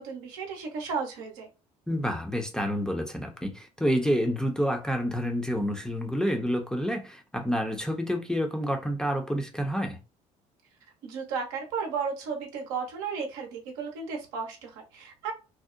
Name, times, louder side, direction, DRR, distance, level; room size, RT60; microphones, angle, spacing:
voice 1, 0.0-1.5 11.0-15.3, right 5 dB, 75° right, 0.6 m, -34 dB
voice 2, 1.9-10.0, equal, 5° left, 0.5 m, -28 dB
2.7 x 2.0 x 2.4 m
hypercardioid pair, 55°, 18 cm